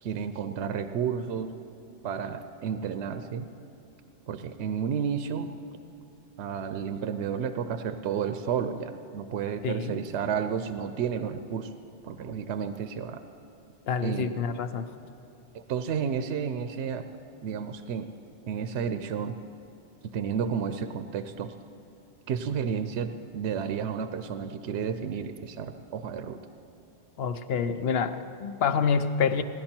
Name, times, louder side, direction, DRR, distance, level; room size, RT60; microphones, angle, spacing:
voice 1, 0.0-1.5 2.0-3.5 4.3-5.5 6.4-11.7 12.0-13.2 14.0-14.4 15.5-17.0 17.4-18.1 18.5-19.4 20.0-21.5 22.3-26.4, right 7 dB, 70° right, 9 dB, 0.8 m, -31 dB
voice 2, 9.6-10.0 13.9-14.9 27.2-29.4, left 6 dB, 65° left, 10 dB, 0.8 m, -27 dB
17.5 x 11.5 x 4.4 m, 2.9 s
omnidirectional pair, 1.2 m